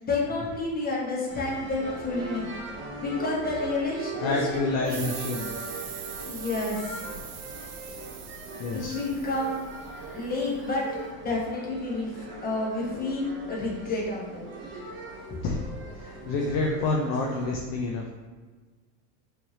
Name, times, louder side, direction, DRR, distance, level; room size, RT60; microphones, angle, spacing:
voice 1, 0.0-2.5 3.0-5.0 6.2-7.0 8.7-9.7 10.1-10.8 11.2-12.1 12.4-14.5 15.3-15.4, left 2 dB, 20° left, -4 dB, 1.0 m, -30 dB
sound 1, 1.3-17.5, right 2 dB, 25° right, 0.8 m, -40 dB
voice 2, 4.2-5.5 8.6-8.9 15.4-15.7 16.0-18.1, left 3 dB, 45° left, 0 dB, 0.5 m, -28 dB
sound 2, 4.8-10.2, right 7 dB, 80° right, 0.8 m, -41 dB
4.3 x 3.3 x 2.7 m, 1.4 s
supercardioid pair, 115°, 47 cm